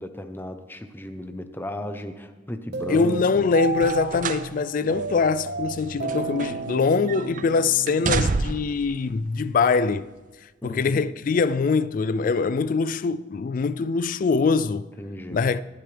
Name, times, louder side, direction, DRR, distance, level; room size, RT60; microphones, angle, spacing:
voice 1, 0.0-3.5 10.6-11.0 15.0-15.4, left 1 dB, 10° left, 0.8 m, -35 dB
sound 1, 2.7-8.9, right 3 dB, 65° right, 0.9 m, -33 dB
voice 2, 2.9-10.1 10.6-14.9 15.3-15.6, left 4 dB, 50° left, 0.3 m, -23 dB
sound 2, 3.7-4.5 4.9-5.0 5.8-6.8 7.1-7.4 7.9-8.8 9.7-9.8, right 4 dB, 45° right, 0.5 m, -28 dB
18.5 x 11.0 x 3.4 m
head